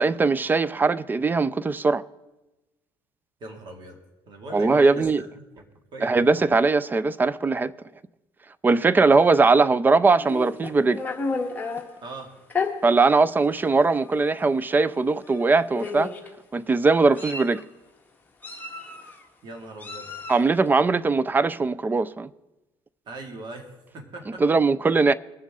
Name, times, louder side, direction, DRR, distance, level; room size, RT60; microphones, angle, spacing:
voice 1, 0.0-2.0 4.5-5.2 6.0-7.7 8.6-11.0 12.8-16.1 16.5-17.6 20.3-22.3 24.4-25.1, right 3 dB, 20° right, 0.4 m, -20 dB
voice 2, 3.4-4.0 4.3-5.3 5.6-5.7 5.9-6.3 12.0-12.3 19.4-20.1 23.1-24.4, right 2 dB, 50° right, 2.3 m, -39 dB
Meow, 10.2-11.8 12.5-12.7 13.5-13.7 14.0-14.2 15.3-15.4 15.7-16.3 16.9-17.6 18.4-19.2 19.8-20.5, left 4 dB, 15° left, 1.5 m, -31 dB
21.5 x 7.2 x 3.7 m
cardioid pair, 125°, 10 cm